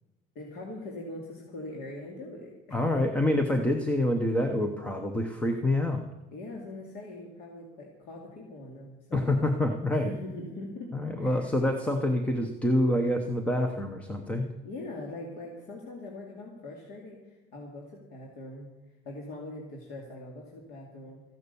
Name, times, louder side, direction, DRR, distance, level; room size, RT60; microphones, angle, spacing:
voice 1, 0.3-3.0 6.3-9.3 9.9-10.9 11.2-11.5 14.6-21.2, left 2 dB, 60° left, -1 dB, 2.5 m, -42 dB
voice 2, 2.7-6.0 9.1-10.1 10.9-14.5, left 1 dB, 5° left, 5 dB, 0.7 m, -27 dB
15.0 x 11.0 x 6.9 m, 1.0 s
cardioid pair, 180°, 18 cm